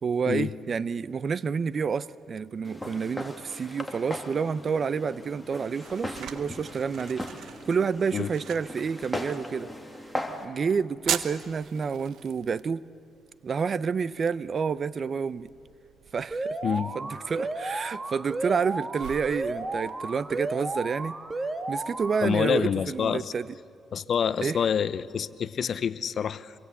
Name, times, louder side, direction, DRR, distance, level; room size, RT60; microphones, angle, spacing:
voice 1, 0.0-7.3 7.6-9.7 10.4-12.8 13.4-15.5 16.1-16.6 16.9-21.2 21.7-23.5 24.4-24.6, right 6 dB, 45° right, 17 dB, 0.6 m, -29 dB
Walk footsteps, 2.6-10.5, left 1 dB, 5° left, 2.7 m, -38 dB
sound 1, 5.1-22.6, right 9 dB, 75° right, 1.1 m, -43 dB
Alarm, 16.3-22.3, right 2 dB, 20° right, 1.6 m, -33 dB
voice 2, 22.2-23.3 23.9-26.5, left 7 dB, 55° left, 15 dB, 0.8 m, -27 dB
26.0 x 22.5 x 8.4 m, 2.3 s
cardioid pair, 90°, 0 cm